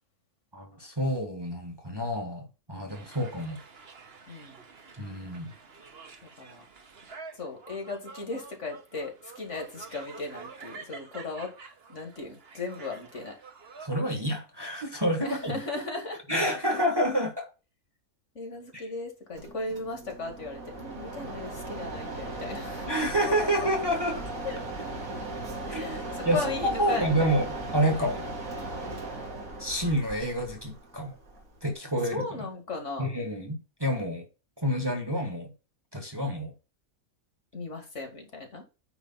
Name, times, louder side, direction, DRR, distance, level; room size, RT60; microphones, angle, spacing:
voice 1, 0.5-3.6 5.0-5.5 13.8-15.6 16.3-17.5 18.7-18.8 22.9-24.3 25.7-26.4 26.8-28.3 29.6-31.2 31.6-32.2 33.0-34.3 34.6-35.5 35.9-36.5, equal, 15° right, 1.4 m, -28 dB
sound 1, 2.9-13.9, right 4 dB, 45° right, 1.3 m, -48 dB
voice 2, 4.3-4.6 6.4-6.6 7.4-11.5 11.9-13.3 15.2-16.5 18.4-22.9 24.4-24.9 25.7-27.3 32.1-33.2 37.5-38.6, left 3 dB, 55° left, 2.4 m, -37 dB
Mechanisms, 19.3-31.7, right 2 dB, 70° right, 2.4 m, -37 dB
9.4 x 3.4 x 5.5 m
omnidirectional pair, 1.5 m